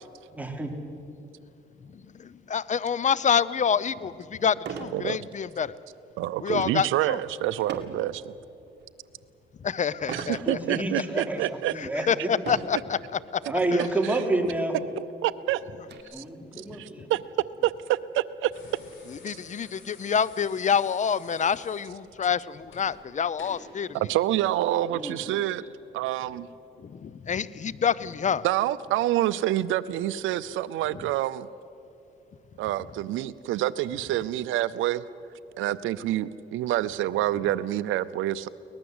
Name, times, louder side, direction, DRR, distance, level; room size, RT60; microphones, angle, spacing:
voice 1, 0.3-0.7 10.5-12.3 13.4-14.8 16.1-17.1 24.9-25.2, right 2 dB, 5° right, 2 dB, 3.3 m, -29 dB
voice 2, 1.9-5.7 6.4-7.2 9.6-10.8 11.7-13.0 13.3-13.4 16.7-17.1 19.2-23.9 26.8-28.4, left 7 dB, 35° left, 19 dB, 0.7 m, -27 dB
sound 1, 3.6-3.7 4.6-5.0 5.5-5.8 7.7-8.1 8.7-9.1 10.1-10.4 11.2-11.3 12.4-12.9 13.9-14.0 14.3-14.4 14.9-16.0, right 7 dB, 60° right, 2.2 m, -38 dB
voice 3, 4.9-5.3 6.2-8.3 10.1-11.7 14.0-14.2 15.0-15.6 16.2-16.3 16.8-17.2 17.6-18.5 23.9-25.6 25.9-26.5 28.4-31.5 32.6-35.0 35.6-38.5, right 14 dB, 90° right, 13 dB, 0.6 m, -27 dB
sound 2, 18.5-23.7 25.0-25.2, left 4 dB, 75° left, 6.8 m, -51 dB
23.5 x 18.5 x 8.0 m, 2.9 s
cardioid pair, 90°, 20 cm